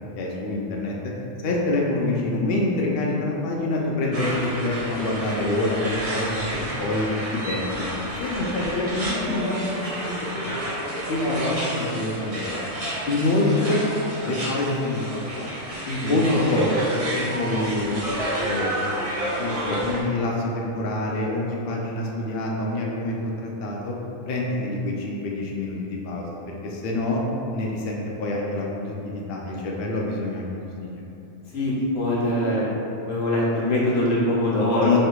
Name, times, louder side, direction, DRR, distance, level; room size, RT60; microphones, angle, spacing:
voice 1, 0.2-1.0 1.4-7.8 8.2-10.7 11.1-12.6 13.1-13.9 14.2-15.6 16.1-18.1 18.4-18.7 19.4-23.9 24.3-27.2 27.5-30.9 34.8-35.0, left 2 dB, 60° left, -2 dB, 0.7 m, -26 dB
sound 1, 4.1-20.0, right 1 dB, 35° right, 0.7 m, -30 dB
voice 2, 31.5-32.7 33.0-35.0, left 1 dB, 85° left, -5 dB, 1.3 m, -23 dB
3.2 x 2.9 x 4.4 m, 2.9 s
omnidirectional pair, 1.3 m